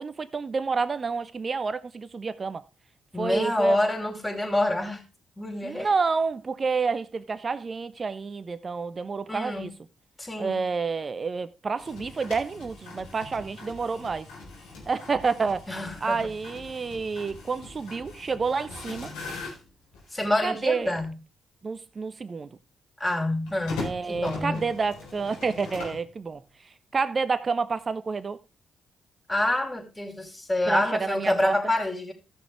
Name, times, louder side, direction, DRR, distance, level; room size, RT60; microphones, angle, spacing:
voice 1, 0.0-2.6 3.2-3.8 5.6-9.7 10.4-14.3 14.9-15.6 16.0-19.1 20.4-21.0 21.6-22.6 23.8-26.4 26.9-28.4 30.7-31.6, right 4 dB, 45° right, 1.1 m, -29 dB
voice 2, 3.1-5.0 5.4-5.9 9.3-9.7 10.2-10.7 15.7-16.2 20.1-21.2 23.0-24.7 29.3-32.1, left 1 dB, 15° left, 4.8 m, -27 dB
sound 1, 11.8-20.3 20.9-21.1 23.5-26.1, left 3 dB, 85° left, 4.1 m, -41 dB
15.0 x 6.8 x 3.4 m
hypercardioid pair, 45°, 0 cm